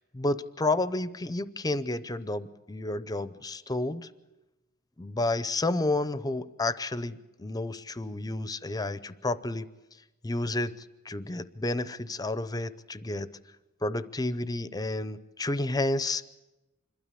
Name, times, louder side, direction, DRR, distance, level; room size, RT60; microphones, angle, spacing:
voice 1, 0.1-4.1 5.0-9.7 10.2-10.7 11.1-13.3 13.8-16.3, left 2 dB, 20° left, 15 dB, 0.6 m, -30 dB
26.5 x 12.5 x 8.2 m, 1.0 s
head